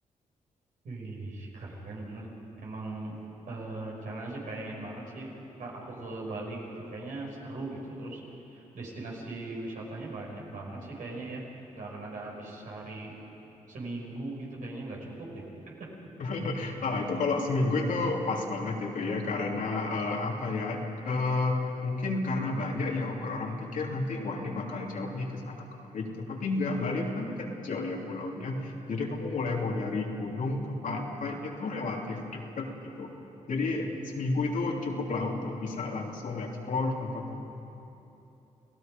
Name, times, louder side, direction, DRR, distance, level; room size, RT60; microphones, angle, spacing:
voice 1, 0.8-2.3 2.6-3.2 3.5-5.3 5.6-8.2 8.5-11.4 11.7-13.1 13.7-15.7, right 2 dB, 75° right, -3 dB, 5.8 m, -39 dB
voice 2, 16.2-33.1 33.5-37.4, left 3 dB, 70° left, -1 dB, 2.9 m, -31 dB
30.0 x 17.5 x 5.3 m, 3.0 s
cardioid pair, 60°, 14 cm